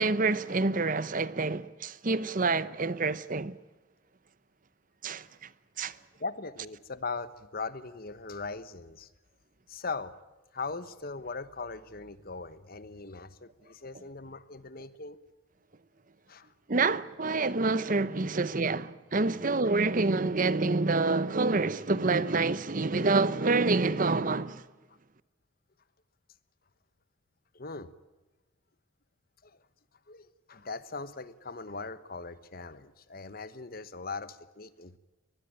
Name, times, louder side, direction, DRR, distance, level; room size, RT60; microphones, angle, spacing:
voice 1, 0.0-3.6 5.0-5.5 5.8-6.0 16.7-24.7, right 3 dB, 40° right, 0.8 m, -27 dB
voice 2, 6.2-9.1 9.7-10.1 10.5-15.2 16.3-16.5 27.5-27.9 29.4-29.6 30.1-35.0, left 4 dB, 50° left, 1.1 m, -40 dB
23.0 x 20.5 x 8.9 m
head